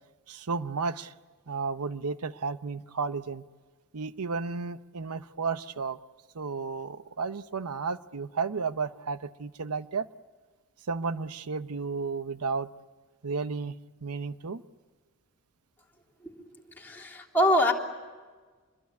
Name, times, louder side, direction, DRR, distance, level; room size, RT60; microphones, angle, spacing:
voice 1, 0.3-1.1 1.5-3.4 3.9-6.0 6.3-10.1 10.9-12.7 13.2-13.7 14.0-14.6, right 4 dB, 90° right, 13 dB, 0.8 m, -33 dB
voice 2, 16.8-17.7, left 1 dB, 10° left, -3 dB, 3.3 m, -25 dB
26.0 x 22.0 x 9.6 m, 1.4 s
head